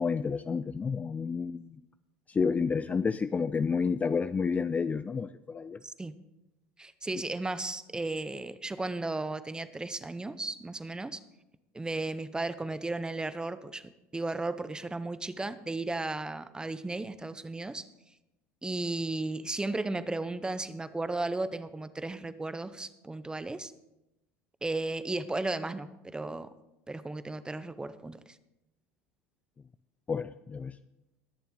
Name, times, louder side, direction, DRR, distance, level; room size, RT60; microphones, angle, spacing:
voice 1, 0.0-1.8 2.3-5.8 30.1-30.8, left 5 dB, 20° left, 13 dB, 0.4 m, -30 dB
voice 2, 5.8-6.1 6.8-11.2 11.7-17.9 18.6-23.7 24.6-26.5 26.9-28.2, right 2 dB, 10° right, 14 dB, 0.7 m, -35 dB
20.0 x 7.0 x 3.9 m, 0.94 s
hypercardioid pair, 85°, 7 cm